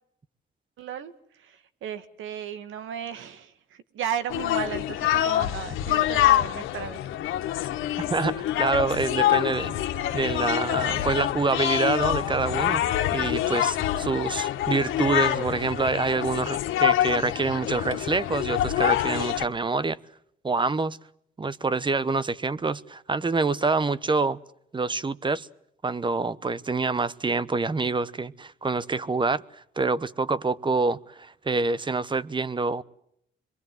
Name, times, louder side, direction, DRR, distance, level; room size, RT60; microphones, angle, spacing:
voice 1, 0.8-1.1 1.5-1.6 1.8-3.5 3.9-7.0, right 9 dB, 80° right, 2.1 m, -34 dB
sound 1, 4.3-19.4, left 12 dB, 90° left, 1.7 m, -26 dB
voice 2, 8.1-9.7 10.1-12.8 13.1-20.0 20.4-21.0 21.4-24.4 24.7-25.5 25.8-29.4 29.8-32.8, right 3 dB, 25° right, 1.0 m, -26 dB
26.0 x 22.5 x 7.9 m
cardioid pair, 90°, 20 cm